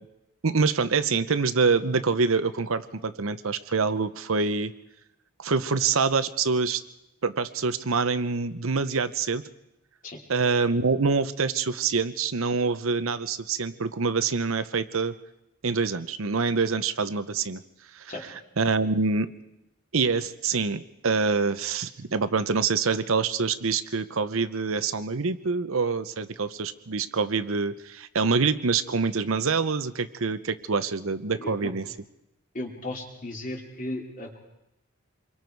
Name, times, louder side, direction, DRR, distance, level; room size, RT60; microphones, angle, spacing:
voice 1, 0.4-4.7 5.4-6.8 7.2-9.4 10.3-15.1 15.6-17.6 17.9-18.0 18.6-19.3 19.9-31.9, right 4 dB, 70° right, 12 dB, 0.8 m, -25 dB
voice 2, 31.4-31.7 32.5-34.4, left 1 dB, 40° left, 1 dB, 3.0 m, -35 dB
27.0 x 23.0 x 4.7 m, 0.89 s
head